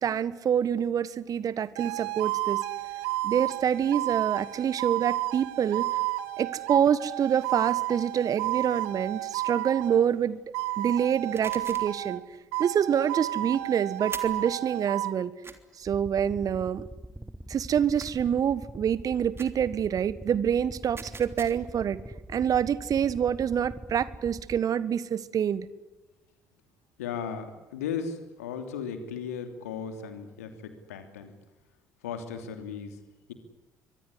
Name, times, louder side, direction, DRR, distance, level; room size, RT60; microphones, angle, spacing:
voice 1, 0.0-2.6 3.2-5.9 6.4-10.4 10.8-12.2 12.6-15.4 15.8-16.8 17.5-22.0 22.3-25.7, right 8 dB, 50° right, 18 dB, 1.5 m, -26 dB
sound 1, 1.8-10.1 10.5-12.2 12.5-15.1, right 18 dB, 70° right, 1.0 m, -32 dB
sound 2, 11.3-12.0 14.1-14.5 15.4-15.6 18.0-18.4 19.4-19.6 21.0-21.8, right 4 dB, 30° right, 3.3 m, -43 dB
sound 3, 15.8-24.6, right 1 dB, 10° right, 1.4 m, -44 dB
voice 2, 27.0-31.3 32.0-33.0, left 7 dB, 75° left, 8 dB, 3.0 m, -36 dB
24.5 x 20.0 x 9.9 m, 1.1 s
figure-of-eight pair, 45°, 8 cm